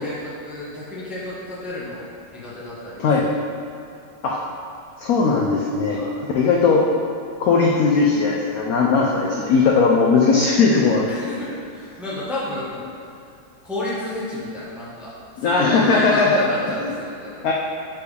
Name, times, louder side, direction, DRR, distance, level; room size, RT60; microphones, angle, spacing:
voice 1, 0.0-2.1 2.3-3.1 5.9-6.2 11.1-11.4 11.7-12.9 13.6-15.1 15.4-17.5, left 1 dB, ahead, -9 dB, 0.8 m, -31 dB
voice 2, 5.0-6.0 6.3-6.9 7.4-11.1 15.4-16.4 16.8-16.9 17.4-17.5, left 4 dB, 75° left, -2 dB, 0.8 m, -18 dB
6.9 x 4.5 x 3.3 m, 2.5 s
omnidirectional pair, 2.1 m